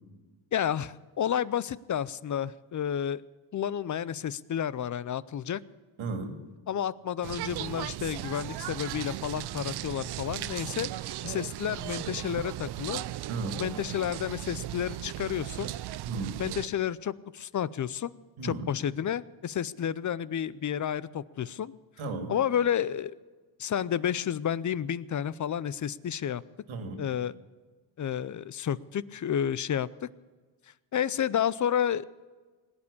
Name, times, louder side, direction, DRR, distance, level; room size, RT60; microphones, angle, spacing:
voice 1, 0.5-3.2 3.5-5.6 6.7-10.9 11.2-13.0 13.6-15.7 16.4-18.1 18.4-21.7 22.3-23.2 23.6-26.4 27.0-27.3 28.0-30.1 30.9-32.0, left 9 dB, 40° left, 19 dB, 0.5 m, -31 dB
voice 2, 6.0-6.4 13.3-13.6 16.0-16.4 18.4-18.7 22.0-22.3 26.7-27.1, right 3 dB, 70° right, 5 dB, 2.5 m, -35 dB
sound 1, 7.2-16.7, right 14 dB, 55° right, 0.5 m, -37 dB
19.5 x 8.7 x 8.5 m, 1.3 s
cardioid pair, 90°, 50 cm